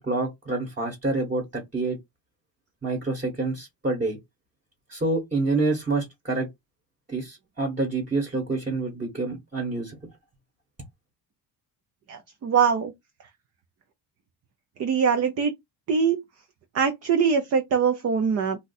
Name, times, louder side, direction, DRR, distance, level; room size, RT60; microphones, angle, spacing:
voice 1, 0.0-2.0 2.8-4.2 4.9-6.5 7.1-10.0, right 3 dB, 15° right, 1.1 m, -27 dB
voice 2, 12.1-12.9 14.8-15.5 15.9-16.2 16.7-18.6, right 6 dB, 35° right, 0.5 m, -22 dB
2.6 x 2.3 x 3.9 m
cardioid pair, 140°, 46 cm